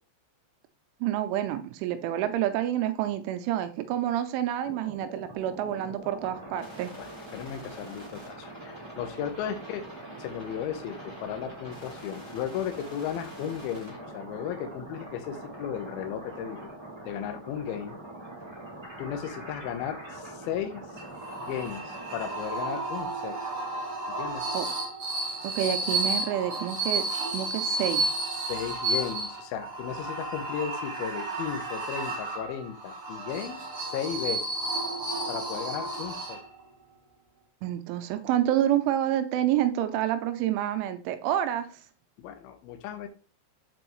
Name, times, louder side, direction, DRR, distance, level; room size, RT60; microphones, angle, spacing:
voice 1, 1.0-6.9 24.5-24.7 25.4-27.1 27.3-28.1 37.6-41.7, right 11 dB, 85° right, 8 dB, 3.1 m, -28 dB
sound 1, 4.6-22.4, right 1 dB, 15° right, 0.9 m, -43 dB
voice 2, 7.3-9.9 10.2-16.7 17.1-18.0 19.0-20.8 21.4-23.4 24.2-24.5 28.5-34.4 35.3-36.4 42.2-43.1, left 9 dB, 90° left, 6 dB, 2.1 m, -35 dB
sound 2, 21.0-36.7, right 2 dB, 40° right, 1.8 m, -32 dB
7.7 x 4.5 x 3.1 m, 0.36 s
omnidirectional pair, 5.5 m